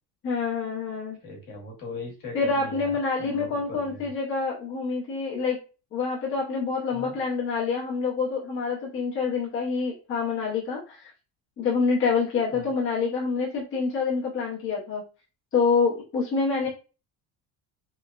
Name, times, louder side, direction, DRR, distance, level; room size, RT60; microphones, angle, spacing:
voice 1, 0.2-1.2 2.3-5.6 5.9-11.1 11.6-15.0 15.5-16.7, left 4 dB, 35° left, -4 dB, 0.7 m, -27 dB
voice 2, 1.2-2.9 3.2-3.6 3.8-4.1 6.9-7.2 12.5-12.7, left 2 dB, 60° left, 0 dB, 1.1 m, -39 dB
3.0 x 2.0 x 2.3 m, 0.34 s
cardioid pair, 135°, 39 cm